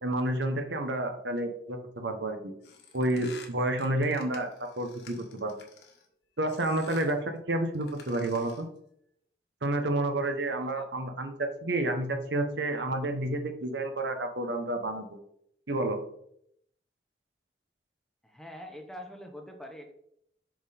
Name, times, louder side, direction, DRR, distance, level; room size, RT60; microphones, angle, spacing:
voice 1, 0.0-2.5 2.9-4.5 4.8-5.5 6.4-8.7 9.6-15.1 15.7-16.0, right 1 dB, 85° right, 6 dB, 1.1 m, -30 dB
sound 1, 2.6-6.1 6.5-7.2 7.7-8.7, left 5 dB, 75° left, 1.5 m, -51 dB
voice 2, 10.6-10.9 18.2-19.9, equal, ahead, 3 dB, 0.8 m, -44 dB
6.1 x 5.4 x 4.2 m, 0.71 s
head